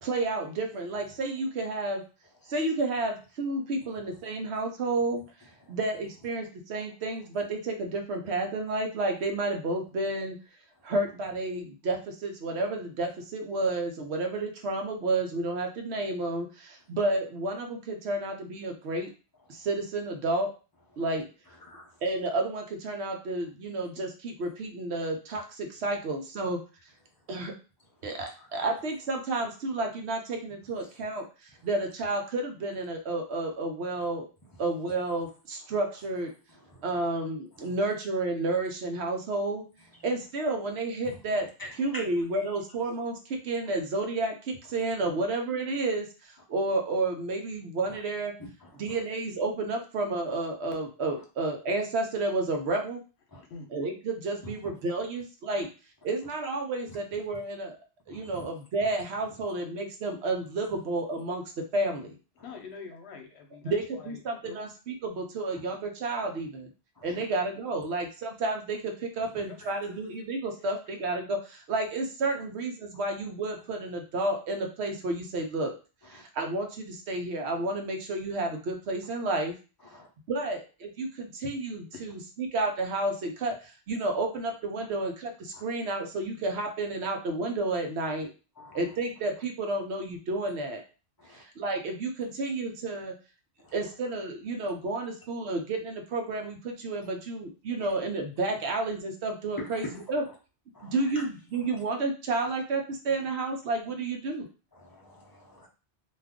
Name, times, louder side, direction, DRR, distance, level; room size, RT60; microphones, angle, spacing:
voice 1, 0.0-2.0 2.5-5.2 5.7-10.4 10.8-19.1 19.5-20.5 21.0-21.3 22.0-26.6 27.3-27.5 28.0-34.3 34.6-36.3 36.8-39.6 40.0-41.5 41.8-48.3 48.7-53.0 53.7-55.7 56.0-57.8 58.1-62.2 63.7-66.7 67.0-75.7 76.1-79.5 80.3-88.3 88.7-90.8 91.3-93.1 93.7-100.2 100.8-104.5, right 2 dB, 80° right, 3 dB, 1.0 m, -31 dB
voice 2, 21.6-21.9 28.3-28.4 36.7-36.8 41.0-41.2 41.6-42.0 48.6-48.7 53.3-53.4 54.4-54.5 58.1-58.5 67.0-67.1 69.6-69.7 76.1-76.2 79.8-80.1 85.5-85.6 88.6-88.8 91.2-91.4 93.6-93.7 99.6-99.8 100.7-101.2 104.7-105.7, left 1 dB, 25° left, -1 dB, 0.6 m, -46 dB
voice 3, 62.4-64.6 67.2-67.3 69.4-69.6 81.9-82.0, left 5 dB, 80° left, 4 dB, 1.0 m, -45 dB
2.5 x 2.4 x 3.5 m, 0.33 s
omnidirectional pair, 1.1 m